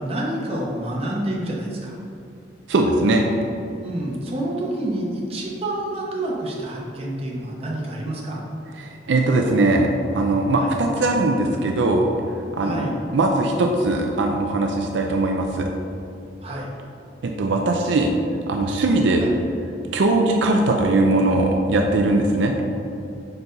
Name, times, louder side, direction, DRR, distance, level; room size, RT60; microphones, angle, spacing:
voice 1, 0.0-2.0 3.8-8.4 10.6-10.7 12.6-13.0 16.4-16.7 19.2-19.3, right 1 dB, 30° right, -3 dB, 0.9 m, -28 dB
voice 2, 2.7-3.3 8.8-15.7 17.2-18.1 18.5-19.3 19.9-22.5, right 2 dB, 70° right, 2 dB, 0.4 m, -20 dB
5.3 x 4.5 x 3.9 m, 2.7 s
head